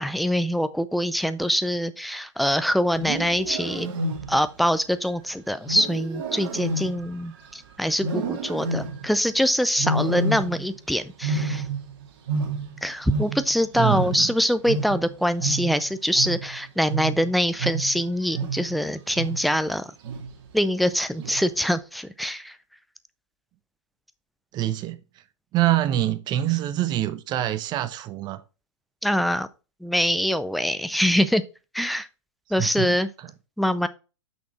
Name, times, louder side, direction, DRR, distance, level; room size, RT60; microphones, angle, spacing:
voice 1, 0.0-3.9 4.3-11.6 12.8-19.9 20.5-22.5 29.0-29.5 29.8-31.4 31.7-32.1 32.5-33.1 33.6-33.9, equal, ahead, 0.5 m, -24 dB
Wild animals, 2.9-4.6 5.7-7.5 8.0-9.2 9.8-10.8 11.1-13.6 13.9-18.8 19.1-19.6 20.0-20.5 21.2-21.6, right 3 dB, 50° right, 1.9 m, -29 dB
voice 2, 13.7-14.3 24.5-25.0 25.5-28.4 32.6-33.3, right 13 dB, 25° right, 0.8 m, -25 dB
6.3 x 6.0 x 4.4 m
figure-of-eight pair, 110°, 16 cm